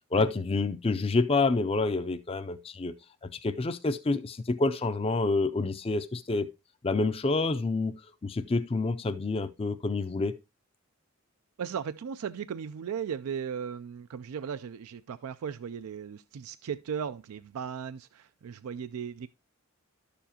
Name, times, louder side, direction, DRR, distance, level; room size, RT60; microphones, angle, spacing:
voice 1, 0.1-2.9 3.2-6.5 6.8-8.0 8.2-10.4, left 3 dB, 25° left, 0.4 m, -28 dB
voice 2, 11.6-19.3, right 7 dB, 85° right, 0.4 m, -36 dB
11.5 x 6.9 x 2.8 m
head